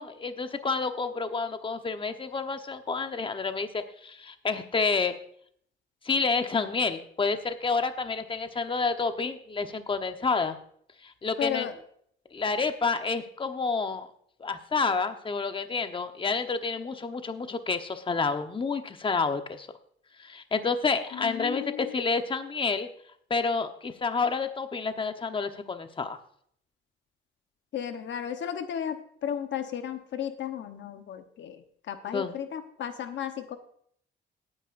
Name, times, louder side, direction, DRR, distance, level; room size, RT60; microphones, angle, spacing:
voice 1, 0.0-5.2 6.0-10.6 11.0-11.7 12.3-14.1 14.4-19.7 20.2-22.9 23.3-26.2 32.1-32.3, left 4 dB, 25° left, 7 dB, 1.0 m, -29 dB
voice 2, 11.4-11.8 21.1-21.9 27.7-33.6, left 9 dB, 70° left, 8 dB, 1.1 m, -34 dB
18.5 x 9.8 x 2.6 m, 0.64 s
cardioid pair, 90°, 20 cm